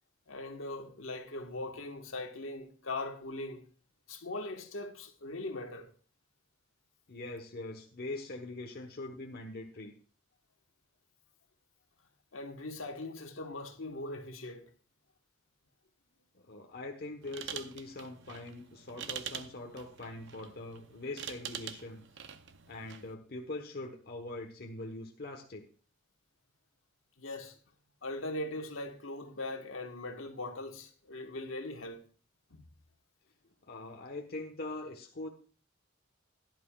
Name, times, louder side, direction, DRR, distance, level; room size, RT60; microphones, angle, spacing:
voice 1, 0.3-3.7 4.1-5.9 12.3-14.7 27.2-27.5 28.0-32.0 32.5-32.6, left 2 dB, 75° left, 1.5 m, -40 dB
voice 2, 7.1-9.9 16.5-22.0 22.7-25.6 33.7-35.3, left 2 dB, 50° left, 1.1 m, -42 dB
sound 1, 17.2-23.1, right 9 dB, 60° right, 0.7 m, -45 dB
16.0 x 11.0 x 2.4 m
head